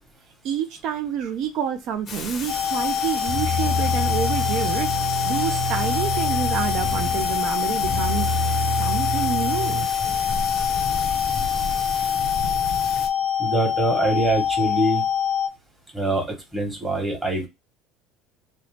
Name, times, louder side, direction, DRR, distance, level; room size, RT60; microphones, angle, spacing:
voice 1, 0.4-8.3 8.7-9.9, right 8 dB, 60° right, 0.3 m, -28 dB
Thunder / Rain, 2.1-13.1, left 4 dB, 35° left, 0.5 m, -33 dB
sound 1, 2.5-15.5, left 8 dB, 85° left, 0.5 m, -25 dB
sound 2, 3.3-7.4 7.8-9.9, equal, 80° right, 0.8 m, -27 dB
voice 2, 13.4-15.0 15.9-16.2 16.5-17.5, right 2 dB, 10° right, 1.0 m, -23 dB
2.6 x 2.0 x 3.1 m
cardioid pair, 130°, 0 cm